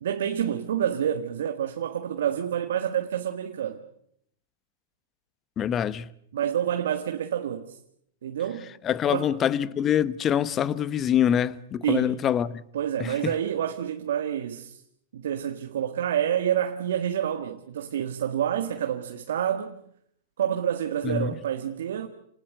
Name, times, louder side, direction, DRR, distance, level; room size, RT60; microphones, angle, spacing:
voice 1, 0.0-3.8 6.3-7.8 8.2-8.7 9.1-9.3 11.8-12.2 12.7-14.8 15.1-19.7 20.4-22.1, right 9 dB, 70° right, 1.7 m, -28 dB
voice 2, 5.6-6.1 8.8-12.6 13.0-13.3 21.0-21.3, left 9 dB, 25° left, 1.0 m, -25 dB
28.0 x 19.0 x 7.8 m
hypercardioid pair, 115°, 0 cm